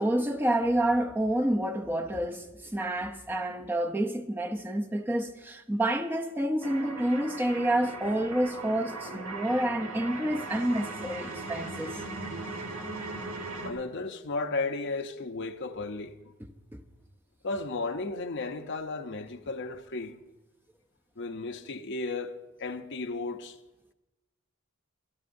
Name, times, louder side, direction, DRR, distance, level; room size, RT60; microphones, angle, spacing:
voice 1, 0.0-12.0, right 1 dB, 10° right, 0.7 m, -28 dB
sound 1, 6.6-13.7, right 2 dB, 90° right, 1.6 m, -38 dB
voice 2, 13.6-16.1 17.4-20.2 21.2-22.3 22.6-23.6, left 3 dB, 60° left, 0.8 m, -34 dB
24.0 x 12.5 x 2.7 m
head